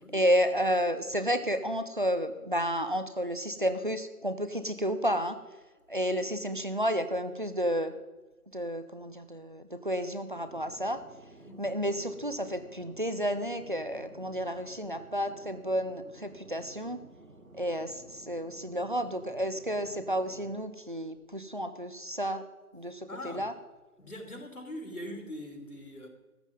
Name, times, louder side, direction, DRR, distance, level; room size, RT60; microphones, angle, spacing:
voice 1, 0.1-5.4 5.9-7.9 8.5-11.0 11.6-17.0 17.5-22.4 22.7-23.5, equal, 35° right, 0.8 m, -31 dB
Fixed-wing aircraft airplane, 10.4-20.5, right 2 dB, 65° right, 2.0 m, -53 dB
voice 2, 23.1-23.5 24.0-26.1, left 1 dB, 75° left, 3.0 m, -42 dB
14.0 x 5.7 x 9.3 m
figure-of-eight pair, 165°, 44 cm